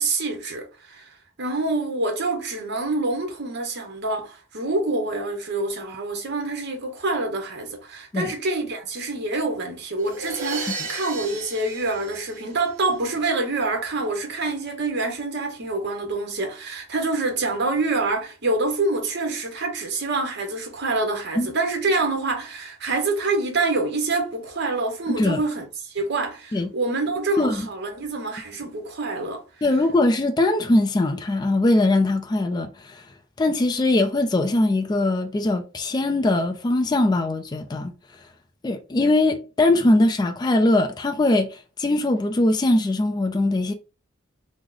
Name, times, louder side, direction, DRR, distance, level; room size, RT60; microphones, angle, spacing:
voice 1, 0.0-29.4, right 2 dB, 55° right, 0.9 m, -26 dB
sound 1, 10.0-12.9, right 3 dB, 35° right, 1.4 m, -34 dB
voice 2, 25.1-25.4 26.5-26.7 27.4-27.7 29.6-33.0 33.4-37.9 38.6-43.7, left 2 dB, 20° left, 0.3 m, -21 dB
3.1 x 2.0 x 3.6 m
head